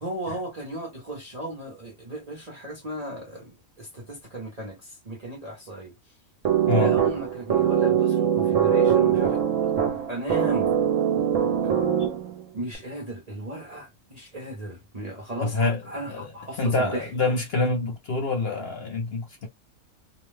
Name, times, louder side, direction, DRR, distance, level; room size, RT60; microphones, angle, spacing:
voice 1, 0.0-5.9 6.8-9.4 10.1-10.8 11.6-11.7 12.5-17.1, right 1 dB, 35° right, 0.7 m, -35 dB
sound 1, 6.5-12.4, right 9 dB, 65° right, 1.0 m, -22 dB
voice 2, 15.4-15.8 16.1-16.3 16.6-19.5, left 3 dB, 50° left, 0.8 m, -26 dB
2.8 x 2.2 x 3.1 m
omnidirectional pair, 1.6 m